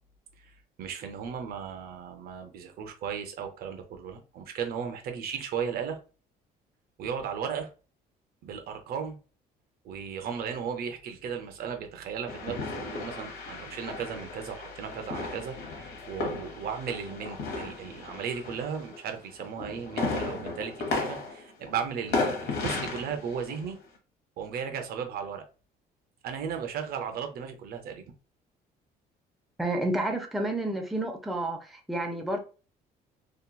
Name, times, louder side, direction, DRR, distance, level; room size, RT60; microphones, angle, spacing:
voice 1, 0.8-6.0 7.0-7.7 8.4-9.2 9.8-23.8 24.4-25.4 26.2-28.0, right 7 dB, 65° right, 6 dB, 0.6 m, -35 dB
sound 1, 12.3-19.1 19.4-23.8, left 3 dB, 75° left, 0.9 m, -35 dB
voice 2, 29.6-32.4, right 1 dB, ahead, 3 dB, 0.5 m, -30 dB
2.9 x 2.3 x 2.3 m, 0.35 s
cardioid pair, 110°, 17 cm